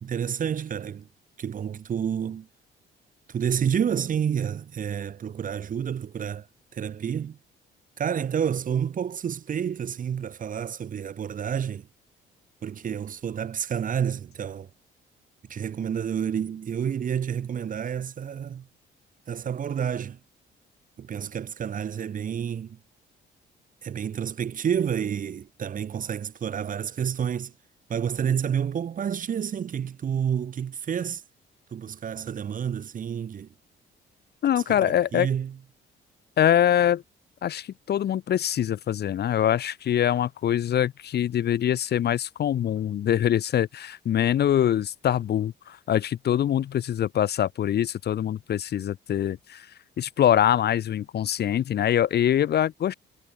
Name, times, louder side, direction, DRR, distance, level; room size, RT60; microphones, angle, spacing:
voice 1, 0.0-1.1 1.4-2.5 3.3-6.5 6.7-7.4 8.0-11.9 12.6-14.7 15.5-18.7 19.3-20.2 21.0-22.8 23.8-27.5 27.9-31.2 31.7-33.5 34.6-35.6, right 8 dB, 45° right, 0.7 m, -29 dB
voice 2, 34.4-35.3 36.4-37.0 37.4-49.7 50.0-52.9, left 10 dB, 55° left, 0.7 m, -24 dB
cardioid pair, 90°, 20 cm